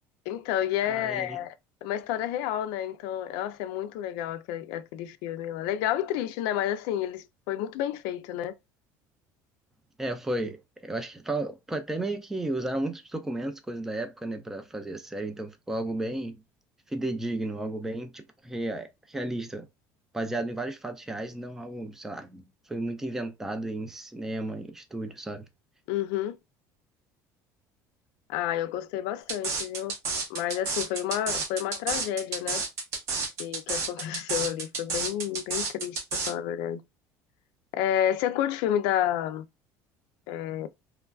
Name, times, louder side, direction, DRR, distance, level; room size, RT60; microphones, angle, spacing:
voice 1, 0.3-1.5 1.8-8.6 25.9-26.4 28.3-29.9 30.3-32.6 33.4-36.8 37.7-39.5 40.3-40.7, left 11 dB, 75° left, 0.4 m, -30 dB
voice 2, 0.9-1.4 10.0-16.4 16.9-19.7 20.1-25.5, right 2 dB, 5° right, 0.4 m, -33 dB
sound 1, 29.3-36.3, right 4 dB, 40° right, 1.0 m, -30 dB
3.0 x 2.4 x 2.3 m
cardioid pair, 170°, 7 cm